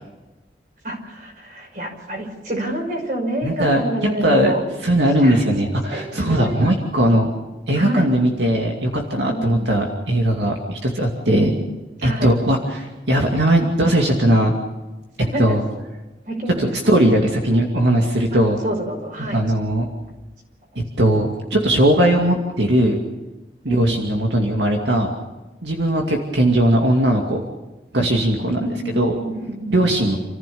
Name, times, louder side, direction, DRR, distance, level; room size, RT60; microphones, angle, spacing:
voice 1, 0.8-4.6 5.2-5.4 5.9-6.8 7.7-8.0 9.3-9.6 11.3-11.6 12.0-12.3 15.2-15.6 16.3-17.0 18.3-19.4 23.6-24.2 28.6-29.8, right 1 dB, 45° right, 2 dB, 5.5 m, -28 dB
voice 2, 3.4-4.5 4.8-7.3 7.7-11.6 12.0-14.6 15.4-15.7 16.6-18.6 19.3-19.9 21.0-23.0 23.6-25.1 25.6-27.4 27.9-29.1 29.7-30.2, right 1 dB, 85° right, 1 dB, 2.5 m, -19 dB
28.5 x 15.0 x 7.1 m, 1.1 s
head